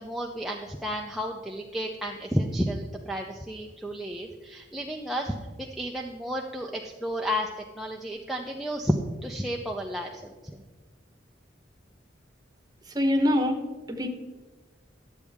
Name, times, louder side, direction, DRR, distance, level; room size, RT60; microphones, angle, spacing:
voice 1, 0.0-7.5 7.7-9.0 9.2-10.6, equal, ahead, -1 dB, 0.5 m, -32 dB
voice 2, 12.9-13.6 13.9-14.1, left 1 dB, 20° right, 3 dB, 1.2 m, -23 dB
11.5 x 8.1 x 3.6 m, 1.3 s
head